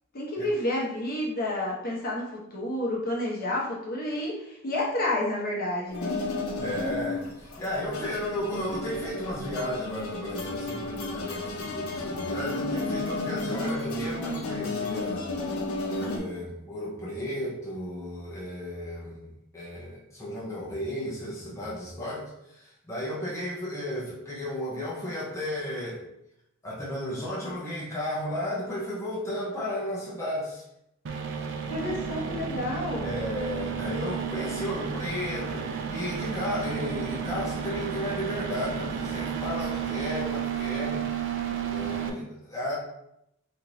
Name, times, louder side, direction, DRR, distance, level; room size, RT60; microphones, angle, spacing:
voice 1, 0.1-6.2 31.7-33.1, left 1 dB, 45° left, -4 dB, 1.0 m, -30 dB
sound 1, 5.9-16.2, left 2 dB, 75° left, 0.7 m, -33 dB
voice 2, 6.6-15.3 15.9-26.0 26.6-30.6 33.0-41.1 41.7-42.7, left 1 dB, 15° left, -6 dB, 0.9 m, -34 dB
sound 2, 31.1-42.1, right 7 dB, 60° right, 0.5 m, -32 dB
3.3 x 3.0 x 4.0 m, 0.81 s
head